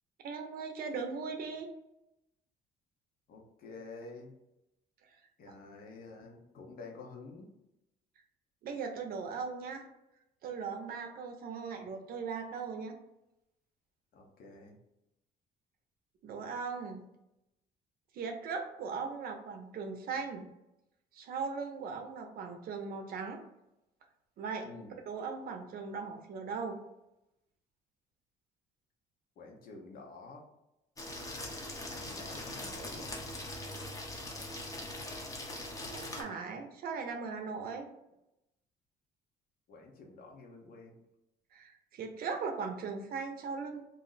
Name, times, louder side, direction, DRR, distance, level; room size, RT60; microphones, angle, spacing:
voice 1, 0.2-1.7 5.1-5.2 8.6-9.8 10.4-12.9 16.2-17.0 18.1-20.5 21.1-23.4 24.4-24.7 25.1-26.8 35.9-37.9 41.5-43.8, right 5 dB, 60° right, 4 dB, 0.6 m, -39 dB
voice 2, 3.3-4.3 5.4-7.5 14.1-14.8 24.6-24.9 29.4-30.4 31.9-33.2 39.7-41.0, left 3 dB, 60° left, 1 dB, 0.8 m, -49 dB
sound 1, 31.0-36.2, left 1 dB, 20° left, 0.6 m, -41 dB
2.5 x 2.0 x 3.9 m, 0.88 s
cardioid pair, 110°, 17 cm